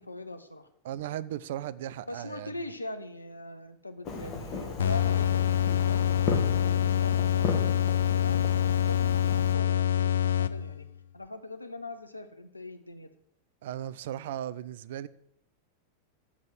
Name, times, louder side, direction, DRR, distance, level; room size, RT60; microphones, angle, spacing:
voice 1, 0.0-0.7 2.1-6.3 6.8-10.9 11.1-13.1, left 2 dB, 85° left, 0.9 m, -41 dB
voice 2, 0.8-2.5 13.6-15.1, right 11 dB, 55° right, 0.4 m, -36 dB
Fireworks, 4.1-9.6, left 3 dB, 35° left, 1.8 m, -36 dB
sound 1, 4.8-10.9, left 10 dB, 65° left, 0.4 m, -26 dB
7.3 x 7.2 x 7.7 m
figure-of-eight pair, 90°, 0 cm